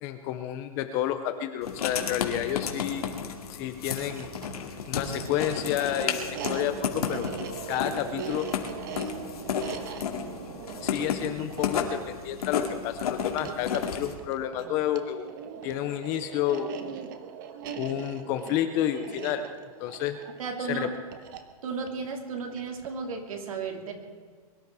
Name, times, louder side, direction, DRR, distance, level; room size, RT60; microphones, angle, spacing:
voice 1, 0.0-3.0 3.6-4.3 4.9-7.3 7.7-8.5 10.8-15.3 15.6-17.0 17.8-19.4 19.8-20.2 20.7-20.9, left 11 dB, 15° left, 9 dB, 0.4 m, -30 dB
Writing, 1.6-14.1, left 7 dB, 80° left, 2.5 m, -33 dB
sound 1, 3.8-23.1, right 7 dB, 35° right, 1.0 m, -41 dB
voice 2, 20.4-20.9 21.6-23.9, right 5 dB, 65° right, 3 dB, 3.0 m, -34 dB
22.5 x 12.5 x 4.7 m, 1.5 s
hypercardioid pair, 170°, 19 cm